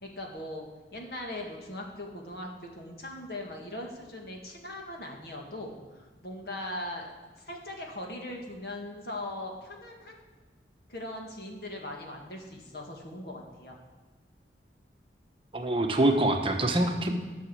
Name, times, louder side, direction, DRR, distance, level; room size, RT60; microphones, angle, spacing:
voice 1, 0.0-7.1 7.4-10.2 10.9-13.7, left 1 dB, 60° left, 1 dB, 1.9 m, -40 dB
voice 2, 15.5-17.2, right 1 dB, 30° right, 3 dB, 1.0 m, -25 dB
12.0 x 6.3 x 7.1 m, 1.3 s
head